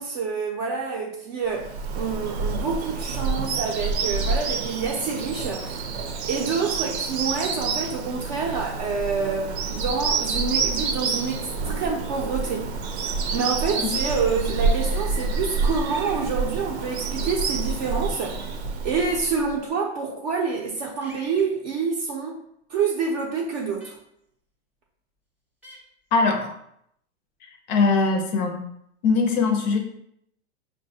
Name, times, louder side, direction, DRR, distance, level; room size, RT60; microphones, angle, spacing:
voice 1, 0.0-5.8 6.3-18.4 18.8-22.4 22.7-24.0, right 5 dB, 40° right, -2 dB, 0.5 m, -27 dB
Bird vocalization bird call bird song, 1.5-19.5, right 4 dB, 80° right, 0.7 m, -28 dB
sound 1, 15.9-16.2 18.4-18.5 21.0-21.4 23.8-23.9 25.6-25.8, right 1 dB, 5° right, 0.7 m, -46 dB
voice 2, 26.1-26.6 27.4-28.7 29.0-29.8, left 4 dB, 45° left, 4 dB, 0.5 m, -22 dB
5.7 x 2.2 x 2.7 m, 0.74 s
supercardioid pair, 145°, 33 cm